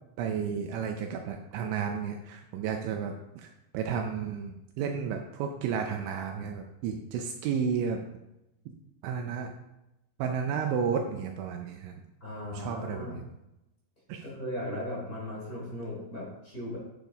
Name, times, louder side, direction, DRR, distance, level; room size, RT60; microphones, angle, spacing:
voice 1, 0.2-8.0 9.0-9.5 10.2-12.0 12.5-13.3 14.1-14.2, right 6 dB, 80° right, 4 dB, 2.9 m, -32 dB
voice 2, 12.2-13.2 14.2-16.8, left 1 dB, 20° left, -7 dB, 3.4 m, -37 dB
9.0 x 7.4 x 3.9 m, 0.90 s
omnidirectional pair, 5.7 m